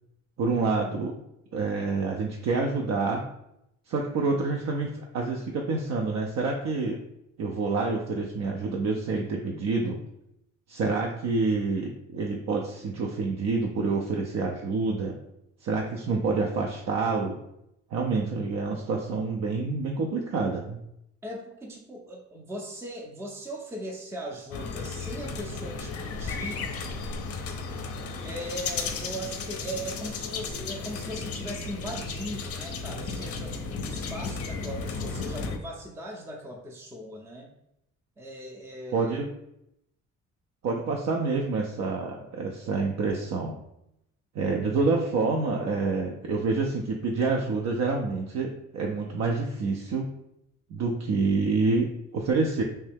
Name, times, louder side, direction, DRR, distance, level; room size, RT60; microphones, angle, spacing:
voice 1, 0.4-1.2 1.5-3.2 3.9-7.0 7.4-10.0 10.7-15.2 15.6-17.4 17.9-20.8 38.9-39.3 40.6-43.6 44.3-50.1 50.7-52.6, right 3 dB, 60° right, 1 dB, 0.5 m, -27 dB
voice 2, 21.2-26.7 28.2-37.5 38.2-39.2, right 1 dB, 10° right, -1 dB, 0.5 m, -39 dB
sound 1, 24.5-35.6, left 4 dB, 50° left, 0.5 m, -34 dB
3.2 x 2.7 x 3.4 m, 0.81 s
cardioid pair, 90°, 30 cm